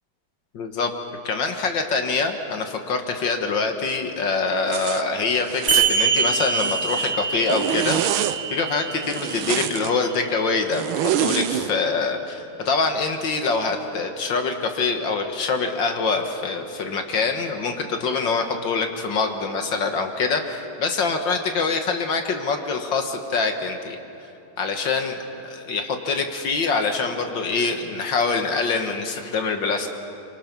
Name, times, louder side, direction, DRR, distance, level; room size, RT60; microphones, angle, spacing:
voice 1, 0.5-0.9 1.2-24.0 24.6-25.2 25.7-29.9, left 4 dB, 60° left, 5 dB, 2.0 m, -25 dB
Zipper (clothing), 4.7-5.0 5.5-5.9 6.4-7.1 7.5-8.4 9.0-9.9 10.7-11.7, right 11 dB, 75° right, 1.5 m, -26 dB
sound 1, 5.7-10.7, right 6 dB, 60° right, 3.8 m, -25 dB
26.5 x 24.5 x 6.1 m, 2.8 s
omnidirectional pair, 2.4 m